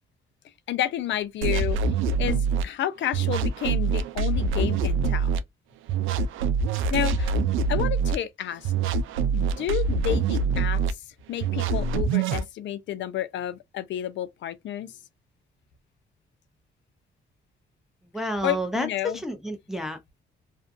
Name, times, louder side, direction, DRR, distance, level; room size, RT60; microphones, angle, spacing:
voice 1, 0.7-1.8 2.2-5.3 6.9-7.4 7.7-8.7 9.3-11.0 11.3-15.0 18.4-19.2, left 11 dB, 70° left, 0.5 m, -30 dB
sound 1, 1.4-2.6 3.1-5.4 5.9-8.2 8.6-10.9 11.4-12.4, right 4 dB, 85° right, 0.4 m, -24 dB
voice 2, 18.1-20.0, equal, ahead, 0.5 m, -30 dB
2.6 x 2.2 x 2.5 m
cardioid pair, 90°, 20 cm